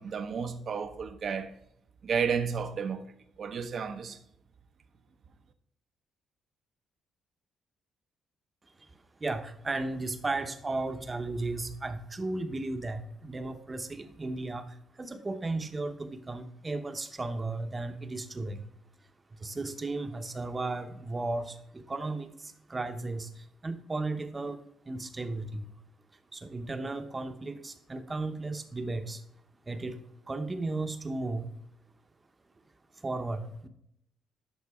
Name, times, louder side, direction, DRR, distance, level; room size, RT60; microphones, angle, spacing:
voice 1, 0.0-1.6 2.0-3.0 3.4-4.2, right 6 dB, 55° right, 0.6 m, -32 dB
voice 2, 8.8-18.7 19.3-25.7 26.3-29.2 29.7-31.6 32.9-33.7, right 2 dB, 25° right, 0.8 m, -35 dB
11.5 x 3.9 x 3.5 m
cardioid pair, 90°, 0 cm